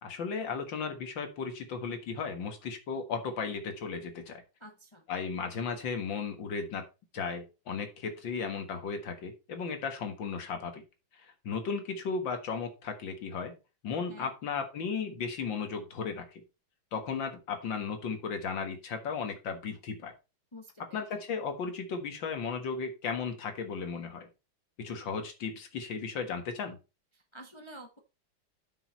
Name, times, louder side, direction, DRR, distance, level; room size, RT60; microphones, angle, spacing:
voice 1, 0.0-4.4 5.1-6.8 7.1-10.8 11.1-13.5 13.8-16.4 16.9-20.1 20.9-24.3 24.8-26.8, left 5 dB, 70° left, 7 dB, 2.3 m, -35 dB
voice 2, 4.6-5.0 14.1-14.3 20.5-21.0 27.1-28.0, equal, 20° left, 4 dB, 0.9 m, -49 dB
8.7 x 6.4 x 4.2 m, 0.29 s
omnidirectional pair, 2.2 m